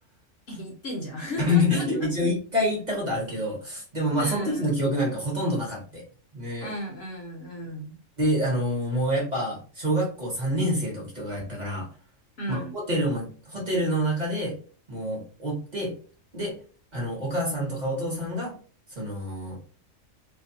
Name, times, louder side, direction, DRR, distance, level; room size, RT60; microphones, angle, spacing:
voice 1, 0.5-2.3 3.3-3.4 4.1-4.7 6.6-8.0 12.4-12.7, left 1 dB, 60° left, -1 dB, 0.8 m, -35 dB
voice 2, 1.4-6.0 6.3-6.7 8.2-11.9 12.5-14.6 14.9-15.9 16.3-16.5 16.9-18.5 19.0-19.6, equal, 35° right, -3 dB, 0.9 m, -27 dB
2.5 x 2.2 x 2.6 m, 0.40 s
omnidirectional pair, 1.4 m